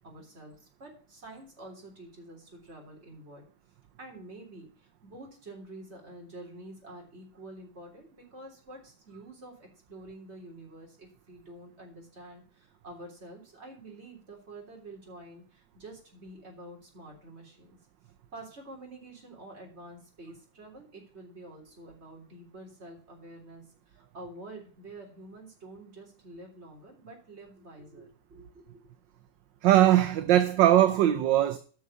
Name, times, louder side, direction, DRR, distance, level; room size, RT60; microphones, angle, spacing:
voice 1, 0.0-3.4 4.0-17.8 18.3-28.8, right 2 dB, 30° right, 3.7 m, -48 dB
voice 2, 29.6-31.6, right 12 dB, 70° right, 1.3 m, -20 dB
9.3 x 6.3 x 6.9 m
omnidirectional pair, 2.2 m